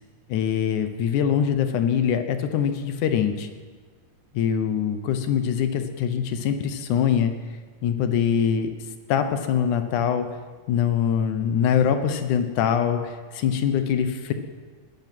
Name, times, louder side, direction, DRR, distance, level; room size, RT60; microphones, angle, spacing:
voice 1, 0.3-3.5 4.3-7.3 7.8-8.7 9.1-10.3 10.7-14.3, left 8 dB, 80° left, 8 dB, 2.6 m, -23 dB
20.0 x 11.0 x 6.1 m, 1.5 s
omnidirectional pair, 3.5 m